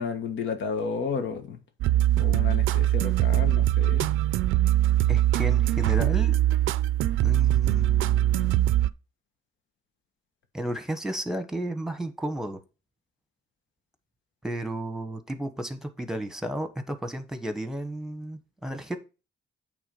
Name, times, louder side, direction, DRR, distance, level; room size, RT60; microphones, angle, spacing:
voice 1, 0.0-1.6 2.1-4.1, left 5 dB, 70° left, 1.4 m, -32 dB
sound 1, 1.8-8.9, right 13 dB, 85° right, 0.5 m, -22 dB
voice 2, 5.1-6.4 7.2-8.5 10.5-12.6 14.4-19.0, right 1 dB, ahead, 1.3 m, -33 dB
8.6 x 3.6 x 5.4 m
cardioid pair, 90°, 20 cm